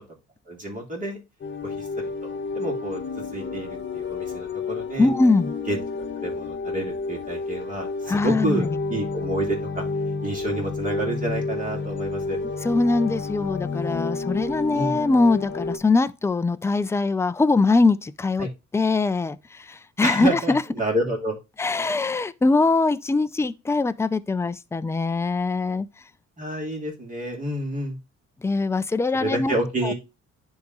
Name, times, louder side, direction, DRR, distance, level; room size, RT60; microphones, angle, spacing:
voice 1, 0.5-1.2 1.6-2.0 2.5-5.1 5.7-9.8 10.2-12.4 14.7-15.0 18.4-18.5 20.0-21.4 26.4-28.0 29.2-29.9, right 1 dB, 25° right, 3.1 m, -29 dB
sound 1, 1.4-15.8, left 4 dB, 40° left, 1.0 m, -30 dB
voice 2, 5.0-5.5 8.1-8.7 12.6-18.5 18.7-20.6 21.6-25.9 28.4-29.5 29.8-29.9, left 3 dB, 10° left, 0.4 m, -22 dB
10.5 x 3.7 x 3.1 m
cardioid pair, 90°, 30 cm